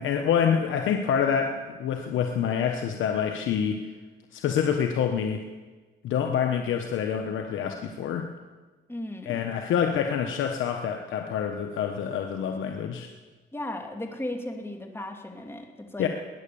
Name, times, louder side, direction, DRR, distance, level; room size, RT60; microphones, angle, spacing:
voice 1, 0.0-3.9 4.3-5.4 6.0-8.3 9.2-13.1 16.0-16.1, left 8 dB, 80° left, 4 dB, 1.2 m, -27 dB
voice 2, 8.9-9.4 13.5-16.1, left 1 dB, 10° left, 3 dB, 2.5 m, -36 dB
20.5 x 9.9 x 7.0 m, 1.3 s
cardioid pair, 90°, 20 cm